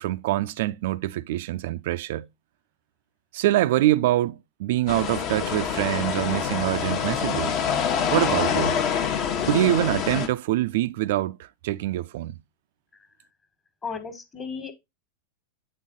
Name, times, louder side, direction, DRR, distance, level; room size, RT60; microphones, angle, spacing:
voice 1, 0.0-2.3 3.3-7.6 8.1-8.9 9.4-12.4, right 15 dB, 55° right, 0.4 m, -25 dB
sound 1, 4.9-10.3, left 7 dB, 40° left, 0.9 m, -26 dB
voice 2, 13.8-14.7, left 5 dB, 20° left, 1.4 m, -34 dB
8.7 x 3.7 x 3.7 m
figure-of-eight pair, 90°, 0 cm